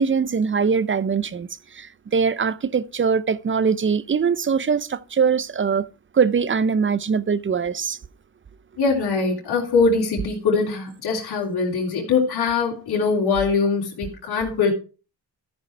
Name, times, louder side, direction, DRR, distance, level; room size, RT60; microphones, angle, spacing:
voice 1, 0.0-1.5 1.7-5.9 6.1-8.0, right 6 dB, 30° right, 0.7 m, -22 dB
voice 2, 8.8-14.7, left 4 dB, 70° left, 3.5 m, -22 dB
13.5 x 5.6 x 4.6 m
cardioid pair, 65°, 40 cm